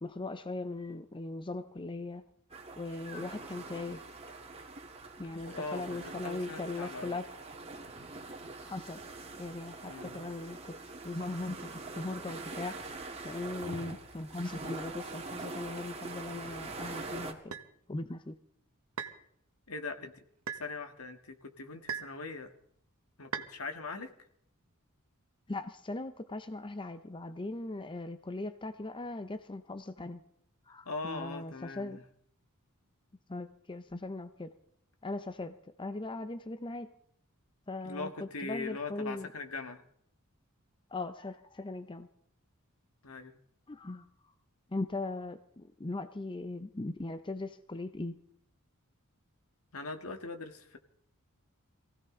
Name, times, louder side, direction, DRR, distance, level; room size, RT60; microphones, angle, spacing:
voice 1, 0.0-2.3 2.8-4.0 5.2-7.3 8.6-9.0 9.4-10.8 11.0-12.9 13.2-17.5 17.9-18.4 25.5-30.2 30.7-32.0 33.3-34.5 35.0-36.9 37.7-39.3 40.9-42.1 43.7-44.1 44.7-48.2, left 2 dB, 20° left, 10 dB, 0.6 m, -39 dB
sound 1, 2.5-17.3, right 3 dB, 30° right, 2.0 m, -44 dB
voice 2, 5.3-7.2 9.8-10.2 19.7-20.1 20.5-22.5 23.2-24.1 30.8-32.0 37.8-39.8 43.0-43.4 49.7-50.8, left 3 dB, 75° left, 7 dB, 1.7 m, -41 dB
sound 2, 17.5-17.7 19.0-19.2 20.5-20.7 21.9-22.2 23.3-23.5, right 6 dB, 70° right, 1.1 m, -38 dB
23.0 x 16.0 x 3.9 m, 0.67 s
head